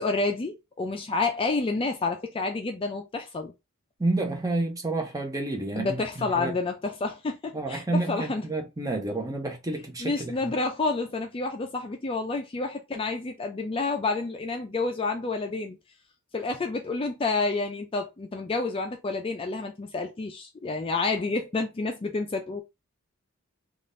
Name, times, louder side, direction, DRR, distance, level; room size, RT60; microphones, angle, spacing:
voice 1, 0.0-3.5 5.8-8.4 10.0-15.8 16.3-22.6, left 3 dB, 25° left, 0.4 m, -29 dB
voice 2, 4.0-6.5 7.5-10.5, right 2 dB, 15° right, 0.7 m, -30 dB
3.6 x 2.4 x 2.5 m
head